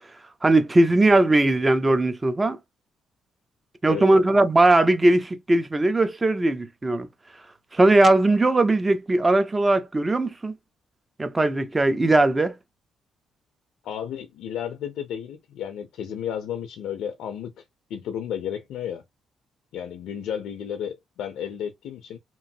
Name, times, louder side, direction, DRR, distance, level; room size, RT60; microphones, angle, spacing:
voice 1, 0.4-2.6 3.8-7.1 7.7-10.5 11.2-12.6, right 2 dB, 20° right, 0.6 m, -19 dB
voice 2, 13.8-17.6 17.9-19.0 19.7-22.2, left 9 dB, 85° left, 0.5 m, -32 dB
3.0 x 2.5 x 2.7 m
cardioid pair, 90°, 0 cm